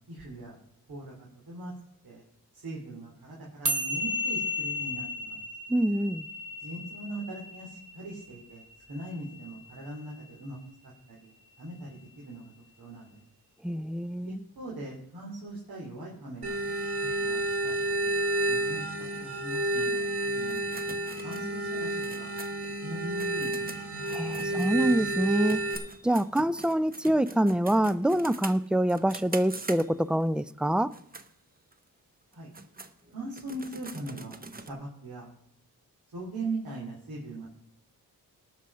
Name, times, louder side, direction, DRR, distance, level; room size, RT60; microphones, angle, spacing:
voice 1, 0.1-0.6 0.9-1.7 2.0-2.2 2.5-5.4 6.6-10.6 10.8-11.3 11.6-12.5 12.8-13.1 14.3-16.6 17.0-18.1 18.5-18.8 19.1-20.8 21.2-22.3 22.8-23.5 32.3-32.5 33.1-35.3 36.1-37.5, right 2 dB, 70° right, 3.5 m, -40 dB
sound 1, 3.7-10.2, left 1 dB, 55° right, 2.8 m, -34 dB
voice 2, 5.7-6.3 13.6-14.4 24.1-25.6 26.0-30.9, right 1 dB, 5° right, 0.4 m, -26 dB
sound 2, 16.4-25.8, right 1 dB, 90° right, 2.9 m, -30 dB
sound 3, 20.5-25.2 25.5-30.2 30.8-31.3 31.7-31.8 32.3-34.7, right 3 dB, 25° right, 1.1 m, -44 dB
18.5 x 6.2 x 5.6 m
cardioid pair, 95°, 37 cm